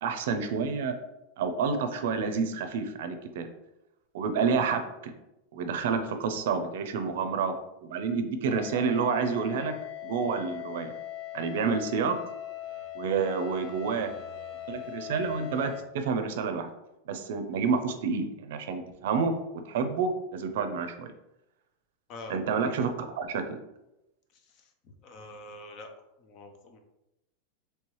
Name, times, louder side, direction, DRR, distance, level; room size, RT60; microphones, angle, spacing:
voice 1, 0.0-0.9 1.4-3.5 4.1-5.1 5.5-7.6 7.8-9.7 10.0-10.9 11.3-12.1 12.9-14.1 14.7-16.7 17.1-19.3 19.6-21.1 22.3-23.6, right 5 dB, 60° right, 7 dB, 0.5 m, -29 dB
sound 1, 8.4-15.8, left 11 dB, 60° left, 1.2 m, -41 dB
voice 2, 25.0-25.9 26.2-26.8, left 2 dB, 30° left, 5 dB, 0.5 m, -44 dB
4.6 x 3.2 x 3.0 m, 0.92 s
supercardioid pair, 175°, 0 cm